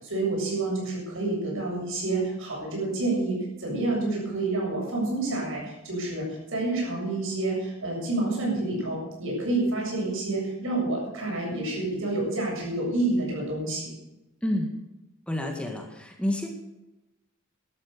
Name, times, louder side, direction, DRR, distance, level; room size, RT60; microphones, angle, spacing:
voice 1, 0.0-13.9, right 2 dB, 65° right, -2 dB, 7.6 m, -28 dB
voice 2, 14.4-14.8 15.3-16.5, left 1 dB, 5° left, 2 dB, 1.7 m, -29 dB
13.0 x 12.5 x 6.7 m, 0.97 s
head